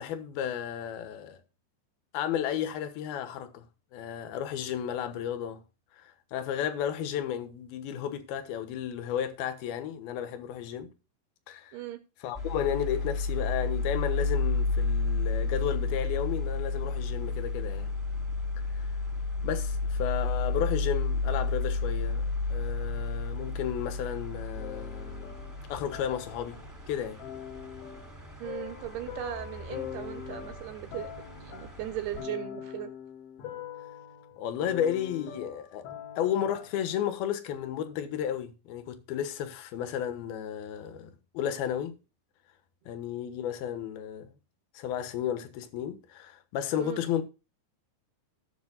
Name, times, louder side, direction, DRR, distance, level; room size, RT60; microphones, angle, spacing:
voice 1, 0.0-1.4 2.1-3.7 3.9-5.6 6.0-10.9 11.5-11.8 12.2-17.9 18.7-18.9 19.4-25.4 25.7-26.6 26.9-27.2 34.4-35.9 36.2-42.0 42.9-44.4 44.7-47.2, left 9 dB, 70° left, 2.8 m, -33 dB
voice 2, 11.7-12.0 28.4-31.1 31.4-32.9 46.8-47.0, right 13 dB, 75° right, 2.6 m, -38 dB
sound 1, 12.3-32.2, left 3 dB, 5° right, 1.6 m, -32 dB
sound 2, 24.6-26.8 27.2-36.9, left 10 dB, 85° left, 4.1 m, -43 dB
17.0 x 7.2 x 2.3 m
omnidirectional pair, 5.3 m